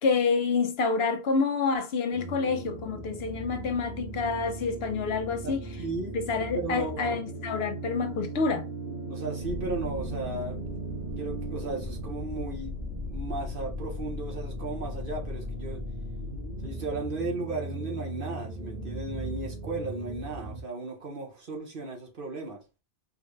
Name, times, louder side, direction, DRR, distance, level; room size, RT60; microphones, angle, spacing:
voice 1, 0.0-5.6 6.1-8.7, left 4 dB, 70° left, 0.9 m, -28 dB
sound 1, 2.1-20.6, right 1 dB, 80° right, 2.1 m, -37 dB
voice 2, 5.4-6.2 6.5-7.2 9.1-10.6 11.2-15.8 16.6-22.6, right 3 dB, 55° right, 1.2 m, -35 dB
sound 2, 9.4-16.5, left 2 dB, 45° left, 0.9 m, -41 dB
4.6 x 2.2 x 3.1 m
omnidirectional pair, 1.1 m